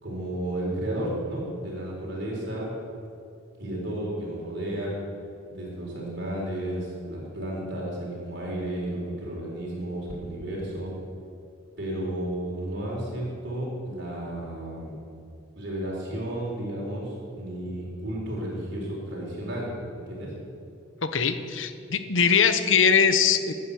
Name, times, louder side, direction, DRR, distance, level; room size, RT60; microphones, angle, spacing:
voice 1, 0.0-2.7 3.6-5.0 5.5-10.9 11.8-15.0 15.6-20.3, right 1 dB, 60° right, -4 dB, 3.8 m, -32 dB
voice 2, 21.0-23.5, left 6 dB, 70° left, 10 dB, 0.9 m, -21 dB
15.0 x 9.4 x 7.0 m, 2.5 s
head